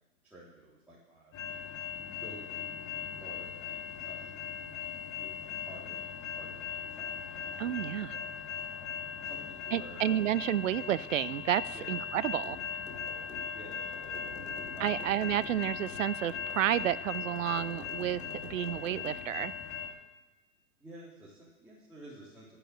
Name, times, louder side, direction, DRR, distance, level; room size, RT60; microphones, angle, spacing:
voice 1, 0.2-1.3 2.1-4.3 5.1-6.1 6.4-8.9 9.2-10.0 11.7-11.9 13.5-15.0 20.8-22.5, right 1 dB, 5° right, -10 dB, 3.7 m, -52 dB
sound 1, 1.3-19.9, left 7 dB, 30° left, 3.2 m, -39 dB
voice 2, 7.6-8.1 9.7-12.6 14.8-19.5, right 13 dB, 60° right, 18 dB, 0.6 m, -31 dB
sound 2, 12.4-19.3, left 3 dB, 85° left, 2.6 m, -49 dB
13.5 x 10.0 x 8.0 m, 1.1 s
hypercardioid pair, 120°, 43 cm